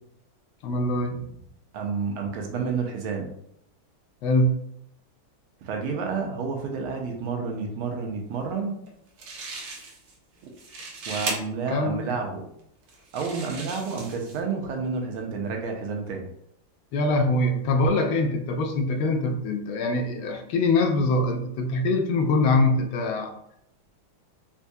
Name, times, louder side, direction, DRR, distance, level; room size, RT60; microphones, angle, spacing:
voice 1, 0.6-1.3 4.2-4.6 11.7-12.0 16.9-23.3, left 2 dB, 80° left, 5 dB, 1.4 m, -23 dB
voice 2, 1.7-3.3 5.6-8.8 11.1-12.4 13.1-16.2, right 5 dB, 90° right, 1 dB, 1.6 m, -30 dB
sound 1, 8.9-9.0 9.2-10.1 10.5-11.4 12.1-12.2 12.9-14.4, right 3 dB, 60° right, 1.1 m, -36 dB
4.4 x 2.3 x 2.6 m, 0.72 s
omnidirectional pair, 2.2 m